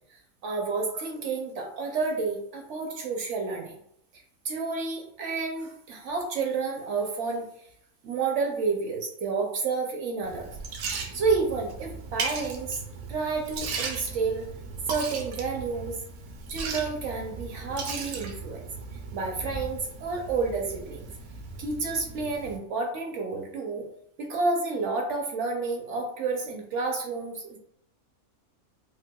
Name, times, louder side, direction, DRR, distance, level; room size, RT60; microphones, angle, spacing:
voice 1, 0.4-3.7 4.4-7.5 8.0-10.5 11.1-12.8 13.1-14.5 14.9-16.0 16.5-18.6 19.1-21.1 21.6-23.8 24.2-27.6, right 4 dB, 65° right, 2 dB, 0.8 m, -30 dB
Liquid, 10.2-22.6, right 4 dB, 85° right, 1.1 m, -37 dB
4.5 x 2.1 x 2.2 m, 0.74 s
omnidirectional pair, 1.5 m